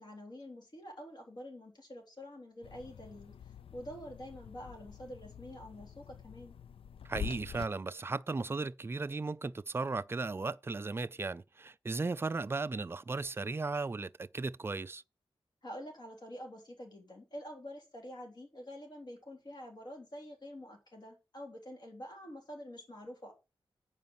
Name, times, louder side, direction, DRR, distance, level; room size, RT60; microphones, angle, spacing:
voice 1, 0.0-6.6 15.6-23.3, equal, 45° left, 3.5 m, -47 dB
sound 1, 2.6-7.7, left 8 dB, 70° left, 0.5 m, -46 dB
voice 2, 7.0-15.0, right 3 dB, 25° right, 0.4 m, -36 dB
9.4 x 5.0 x 7.2 m
wide cardioid pair, 155°, 10 cm